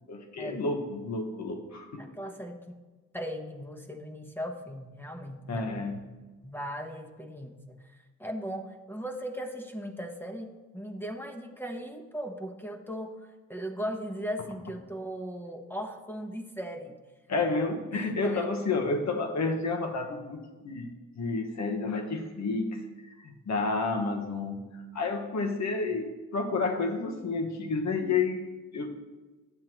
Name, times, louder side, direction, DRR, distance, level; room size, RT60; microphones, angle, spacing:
voice 1, 0.1-2.0 5.5-6.0 17.3-28.4 28.7-29.0, left 3 dB, 60° left, 5 dB, 1.2 m, -30 dB
voice 2, 2.0-2.8 3.1-5.9 6.4-17.0 17.9-18.5, equal, 5° left, 4 dB, 1.0 m, -38 dB
10.5 x 7.4 x 3.0 m, 1.2 s
cardioid pair, 75°, 32 cm